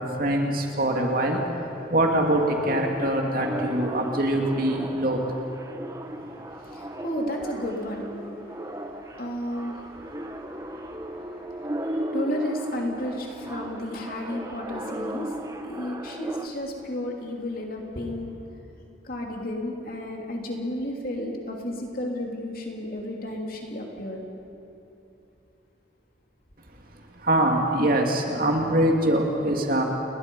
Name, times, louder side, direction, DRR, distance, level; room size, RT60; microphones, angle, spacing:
voice 1, 0.0-1.4 1.9-5.2 6.3-6.4 26.9-29.8, right 1 dB, 45° right, 1 dB, 2.6 m, -23 dB
sound 1, 2.2-16.5, right 1 dB, 20° right, 1.1 m, -35 dB
voice 2, 6.0-18.6 19.0-24.2, left 1 dB, 50° left, 1 dB, 3.0 m, -33 dB
30.0 x 21.0 x 5.5 m, 2.7 s
head